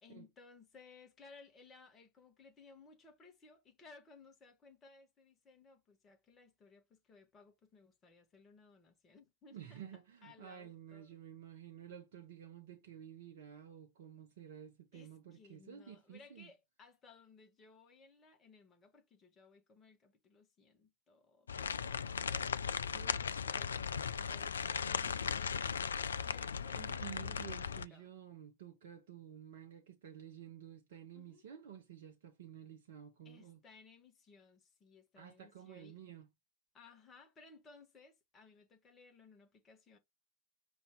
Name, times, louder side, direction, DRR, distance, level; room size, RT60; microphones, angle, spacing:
voice 1, 0.0-9.8 10.2-11.1 14.9-27.3 27.6-28.1 31.1-31.4 33.2-36.0 36.7-40.0, left 4 dB, 25° left, 1.4 m, -61 dB
voice 2, 9.5-16.5 22.9-23.2 26.7-33.6 35.2-36.3, right 9 dB, 55° right, 0.8 m, -52 dB
sound 1, 21.5-27.9, left 6 dB, 70° left, 0.3 m, -37 dB
5.3 x 2.7 x 3.7 m
figure-of-eight pair, 90°, 0 cm